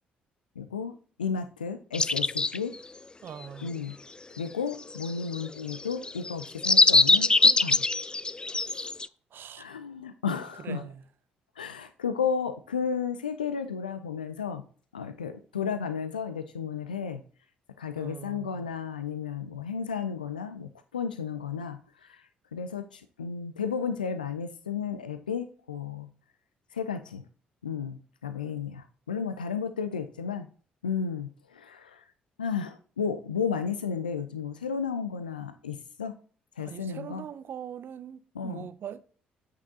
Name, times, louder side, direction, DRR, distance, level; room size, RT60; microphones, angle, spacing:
voice 1, 0.6-2.8 3.6-4.0 4.4-7.8 8.7-8.9 9.6-10.8 11.6-14.7 14.9-17.2 17.8-26.1 26.7-27.2 27.6-30.5 30.8-32.1 32.4-36.2 36.6-37.2 38.4-38.7, left 6 dB, 90° left, 0.4 m, -33 dB
sound 1, 1.9-2.7 4.9-9.1, left 3 dB, 20° left, 0.3 m, -22 dB
voice 2, 3.2-3.7 9.3-9.7 10.6-11.0 18.0-18.7 36.6-39.0, right 8 dB, 50° right, 0.6 m, -41 dB
8.2 x 6.0 x 2.7 m
figure-of-eight pair, 45°, 5 cm